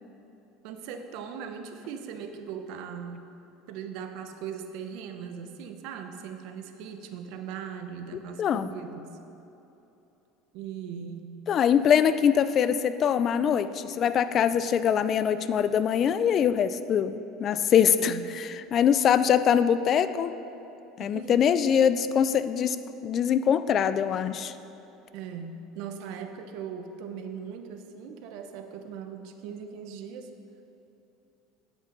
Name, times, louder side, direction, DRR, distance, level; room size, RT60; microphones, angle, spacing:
voice 1, 0.6-3.2 3.7-9.2 10.5-11.4 18.0-18.3 21.0-21.5 25.1-30.3, right 7 dB, 70° right, 7 dB, 0.7 m, -39 dB
voice 2, 11.5-20.3 21.0-22.8 23.0-24.5, left 8 dB, 40° left, 13 dB, 0.3 m, -23 dB
11.0 x 5.3 x 5.1 m, 2.9 s
supercardioid pair, 115°, 0 cm